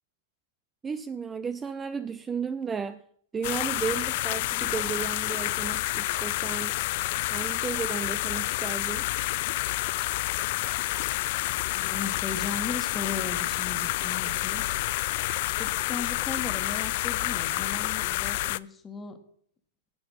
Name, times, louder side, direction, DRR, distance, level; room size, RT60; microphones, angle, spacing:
voice 1, 0.8-3.0 3.3-6.9 7.3-9.1, right 6 dB, 15° right, 0.5 m, -34 dB
sound 1, 3.4-18.6, left 19 dB, 55° left, 0.3 m, -29 dB
voice 2, 11.7-14.6 15.5-19.2, left 4 dB, 15° left, 1.6 m, -37 dB
12.0 x 7.8 x 5.6 m
hypercardioid pair, 115°, 0 cm